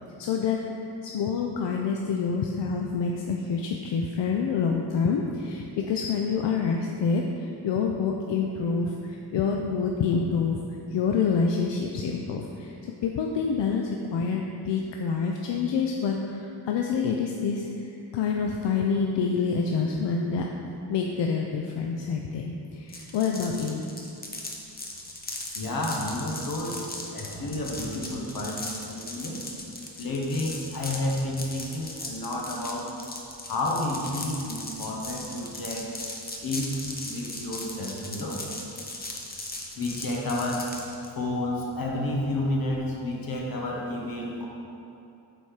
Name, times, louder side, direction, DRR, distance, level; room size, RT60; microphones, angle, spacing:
voice 1, 0.2-10.6 10.9-12.7 13.0-20.5 20.9-23.8, left 5 dB, 75° left, 1 dB, 0.6 m, -27 dB
sound 1, 22.9-41.1, left 2 dB, 20° left, 0.8 m, -38 dB
voice 2, 25.5-26.8 27.1-29.4 30.0-32.9 33.4-35.9 36.4-36.8 37.0-38.4 39.8-40.8 41.1-44.5, left 1 dB, 55° left, -1 dB, 1.2 m, -30 dB
7.9 x 4.3 x 4.8 m, 2.8 s
wide cardioid pair, 135°, 43 cm